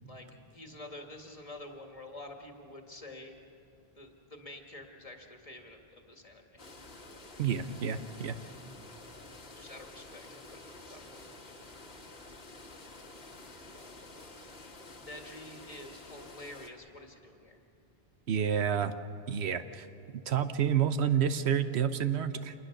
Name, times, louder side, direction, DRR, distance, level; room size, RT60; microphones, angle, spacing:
voice 1, 0.0-3.4 4.0-6.6 9.6-11.7 13.8-14.0 15.0-17.6, left 1 dB, 35° left, 3 dB, 1.8 m, -48 dB
sound 1, 6.6-16.7, left 2 dB, 75° left, 1.9 m, -50 dB
voice 2, 7.4-8.3 18.3-18.9 19.3-19.9 20.1-22.5, right 8 dB, 90° right, 11 dB, 1.1 m, -29 dB
26.5 x 20.0 x 6.6 m, 2.7 s
omnidirectional pair, 1.1 m